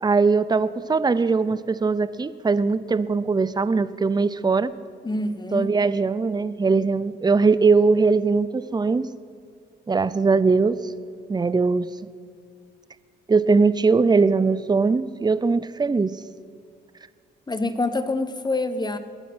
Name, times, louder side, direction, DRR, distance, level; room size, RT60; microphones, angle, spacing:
voice 1, 0.0-4.7 5.5-9.1 9.9-10.8 11.3-11.9 13.3-16.2, right 4 dB, 20° right, 16 dB, 0.6 m, -20 dB
voice 2, 5.0-5.8 17.5-19.0, left 2 dB, 20° left, 11 dB, 1.3 m, -26 dB
22.0 x 9.1 x 6.2 m, 2.2 s
cardioid pair, 70°, 19 cm